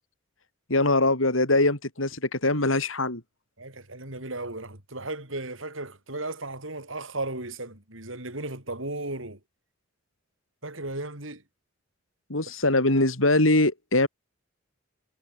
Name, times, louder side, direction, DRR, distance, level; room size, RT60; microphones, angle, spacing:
voice 1, 0.7-3.2 12.3-14.1, left 2 dB, 80° left, 5.2 m, -22 dB
voice 2, 3.6-9.4 10.6-11.4, right 2 dB, 70° right, 6.9 m, -35 dB
head